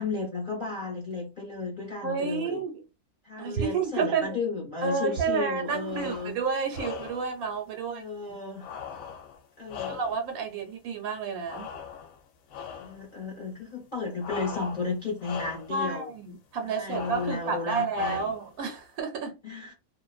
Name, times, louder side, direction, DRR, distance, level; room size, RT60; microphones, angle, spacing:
voice 1, 0.0-2.6 3.2-6.4 7.8-8.7 9.6-10.0 12.8-16.1 16.6-18.2 19.4-19.7, left 4 dB, 45° left, 0.7 m, -33 dB
voice 2, 2.0-2.8 3.4-4.4 4.8-8.0 9.9-11.7 15.7-19.4, right 5 dB, 75° right, 1.0 m, -30 dB
sound 1, 5.8-6.3 6.7-7.3 8.6-10.4 11.5-12.2 12.5-13.0 14.2-14.9 15.2-15.7 16.9-17.5 17.9-18.5, left 7 dB, 70° left, 0.9 m, -40 dB
2.5 x 2.1 x 2.3 m
omnidirectional pair, 1.6 m